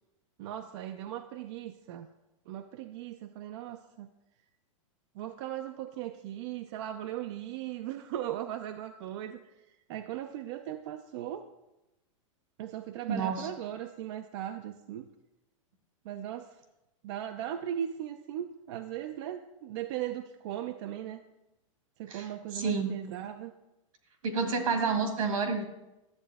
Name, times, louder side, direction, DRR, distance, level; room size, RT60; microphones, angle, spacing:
voice 1, 0.4-2.1 2.5-4.1 5.1-11.5 12.6-15.1 16.0-16.5 17.0-21.2 22.0-23.5, right 11 dB, 55° right, 6 dB, 0.5 m, -38 dB
voice 2, 13.1-13.5 22.1-22.3 22.5-22.9 24.2-25.6, right 5 dB, 80° right, 5 dB, 2.1 m, -29 dB
11.0 x 7.6 x 3.5 m, 0.97 s
hypercardioid pair, 125°, 17 cm